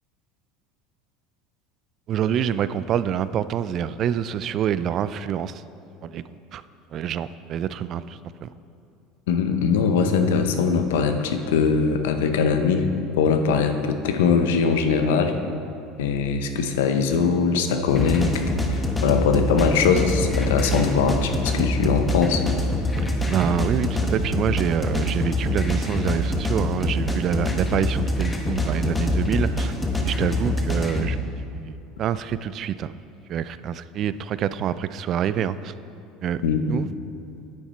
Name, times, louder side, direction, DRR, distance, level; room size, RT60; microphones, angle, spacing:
voice 1, 2.1-5.6 6.0-6.6 6.9-8.5 23.3-29.7 30.0-31.2 31.5-33.0 33.3-35.7 36.2-36.4 36.7-36.9, right 9 dB, 50° right, 15 dB, 0.3 m, -26 dB
voice 2, 9.3-12.9 13.1-15.3 16.0-22.4 36.4-36.8, left 5 dB, 90° left, 7 dB, 0.7 m, -21 dB
sound 1, 17.9-31.1, left 1 dB, 15° left, 1.1 m, -25 dB
9.6 x 7.1 x 4.4 m, 2.6 s
supercardioid pair, 100°, 0 cm